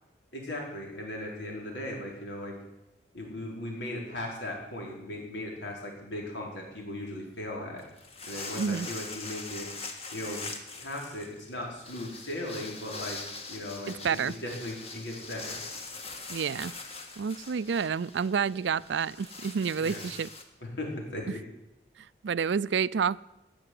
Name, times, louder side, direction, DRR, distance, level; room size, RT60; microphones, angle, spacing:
voice 1, 0.3-2.5 3.1-7.8 8.2-9.7 10.1-10.4 10.8-13.2 13.5-15.6 19.8-20.0 20.6-21.4, left 1 dB, 85° left, -1 dB, 4.7 m, -37 dB
sound 1, 7.8-20.4, left 3 dB, 35° left, 1.5 m, -42 dB
voice 2, 8.6-8.9 13.9-14.3 16.3-16.7 17.2-20.3 21.3-21.4 22.0-23.2, right 6 dB, 80° right, 19 dB, 0.4 m, -29 dB
18.5 x 7.0 x 9.3 m, 0.96 s
head